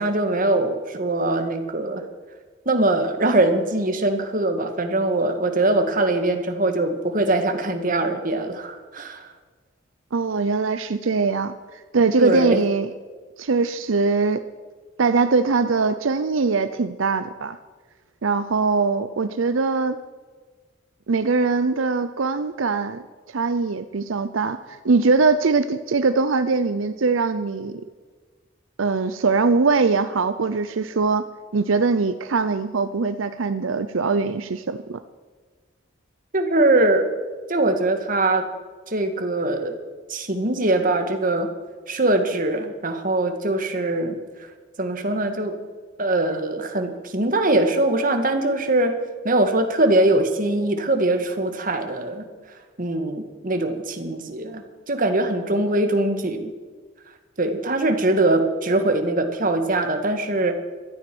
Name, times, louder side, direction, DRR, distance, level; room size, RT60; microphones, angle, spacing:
voice 1, 0.0-2.1 2.7-9.3 12.2-12.6 36.3-37.1 37.5-38.5 38.9-39.8 40.1-41.5 41.9-44.5 44.8-45.6 46.0-49.0 49.2-52.3 52.8-56.5 57.4-60.5, right 2 dB, 45° right, 6 dB, 1.8 m, -22 dB
voice 2, 10.1-11.5 11.9-12.9 13.4-14.4 15.0-17.6 18.2-20.0 21.1-23.0 23.3-24.6 24.8-27.8 28.8-31.2 31.5-35.0, right 4 dB, 80° right, 11 dB, 0.6 m, -21 dB
17.0 x 13.0 x 6.2 m, 1.4 s
head